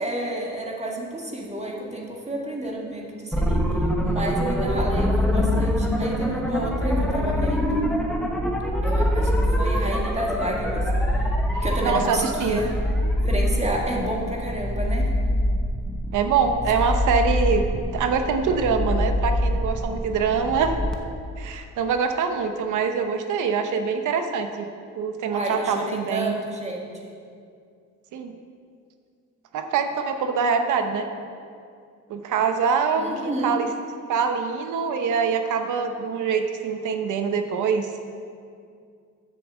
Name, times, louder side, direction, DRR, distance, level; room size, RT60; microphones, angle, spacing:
voice 1, 0.0-3.7 4.0-7.8 8.8-10.9 11.6-12.7 13.2-15.1 25.3-26.9 33.0-33.6, right 1 dB, 20° right, -1 dB, 1.8 m, -30 dB
sound 1, 3.3-20.9, equal, ahead, 1.0 m, -24 dB
voice 2, 11.6-12.6 16.1-17.6 17.9-20.8 21.4-24.7 24.9-26.4 28.1-28.3 29.5-31.1 32.1-33.7 34.1-37.9, right 5 dB, 80° right, 6 dB, 0.9 m, -24 dB
7.5 x 7.1 x 7.2 m, 2.3 s
cardioid pair, 90°, 30 cm